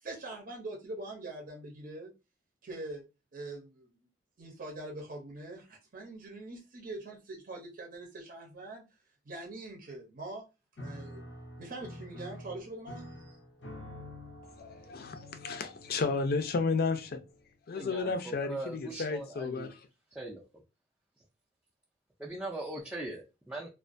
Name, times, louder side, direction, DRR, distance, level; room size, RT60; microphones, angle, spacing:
voice 1, 0.0-2.1 2.6-3.0 3.3-3.9 4.4-8.8 9.3-10.5 10.8-13.4, right 2 dB, 50° right, -1 dB, 0.6 m, -43 dB
Piano, 10.8-17.5, left 1 dB, 85° left, 0.7 m, -48 dB
voice 2, 14.6-17.2 17.7-19.7, left 4 dB, 55° left, 8 dB, 0.4 m, -32 dB
voice 3, 17.7-19.7 20.1-20.4 22.2-23.7, right 2 dB, 5° right, -3 dB, 0.4 m, -40 dB
2.3 x 2.2 x 2.5 m, 0.27 s
head